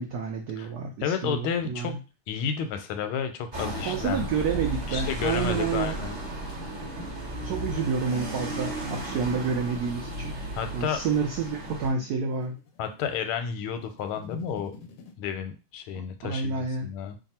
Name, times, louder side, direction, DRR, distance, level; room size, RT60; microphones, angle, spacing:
voice 1, 0.0-2.0 3.8-6.0 7.4-12.6 16.2-16.9, right 5 dB, 75° right, 2 dB, 0.8 m, -29 dB
voice 2, 1.0-1.9 2.3-6.2 10.6-11.0 12.8-14.7 15.2-17.2, left 7 dB, 90° left, 8 dB, 1.5 m, -31 dB
sound 1, 3.5-11.9, right 1 dB, 40° right, 0.6 m, -35 dB
sound 2, 4.5-15.1, left 7 dB, 70° left, 1.0 m, -48 dB
3.3 x 2.4 x 4.1 m, 0.31 s
omnidirectional pair, 2.3 m